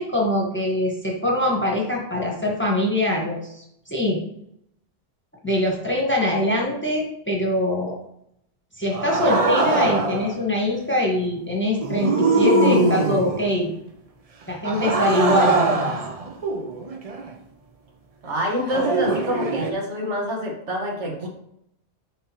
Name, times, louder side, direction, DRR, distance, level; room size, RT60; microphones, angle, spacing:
voice 1, 0.0-4.2 5.4-8.0 8.8-13.8 14.5-15.9, left 1 dB, 10° left, -2 dB, 1.3 m, -23 dB
sound 1, 8.9-10.3 11.8-13.5 14.6-17.3 18.7-19.7, right 2 dB, 40° right, 0.5 m, -22 dB
voice 2, 18.2-21.3, equal, 65° right, 0 dB, 1.7 m, -26 dB
10.5 x 3.7 x 2.9 m, 0.75 s
omnidirectional pair, 1.3 m